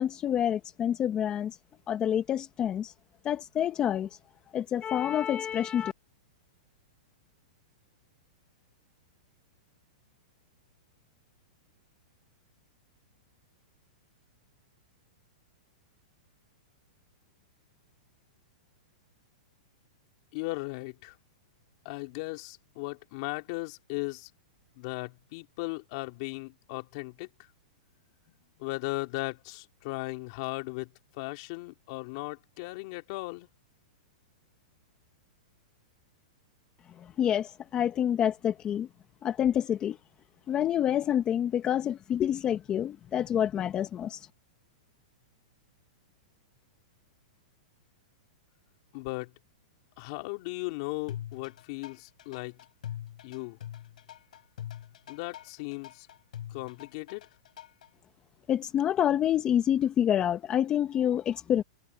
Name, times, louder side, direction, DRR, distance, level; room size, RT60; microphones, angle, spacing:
voice 1, 0.0-1.6 1.9-2.9 3.2-4.2 4.5-5.9 37.0-38.9 39.2-40.0 40.5-44.3 58.5-61.6, left 10 dB, 20° left, 1.1 m, -27 dB
voice 2, 20.3-21.2 21.8-24.3 24.8-27.3 28.6-33.5 48.9-49.3 50.0-52.6 53.2-53.6 55.1-56.1 56.5-57.3, left 25 dB, 45° left, 3.3 m, -37 dB
sound 1, 51.1-57.9, left 11 dB, 75° left, 7.7 m, -43 dB
hypercardioid pair, 145°, 4 cm